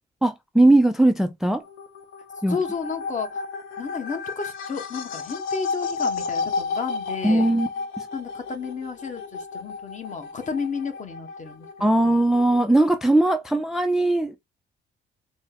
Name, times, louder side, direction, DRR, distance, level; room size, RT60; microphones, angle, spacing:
voice 1, 0.2-1.6 2.4-2.6 7.2-7.7 11.8-14.4, right 1 dB, ahead, 0.4 m, -19 dB
sound 1, 1.6-12.9, left 4 dB, 90° left, 0.7 m, -32 dB
voice 2, 2.5-3.4 3.8-7.5 8.1-12.2, left 5 dB, 40° left, 1.1 m, -32 dB
4.2 x 2.1 x 3.5 m
cardioid pair, 90°, 20 cm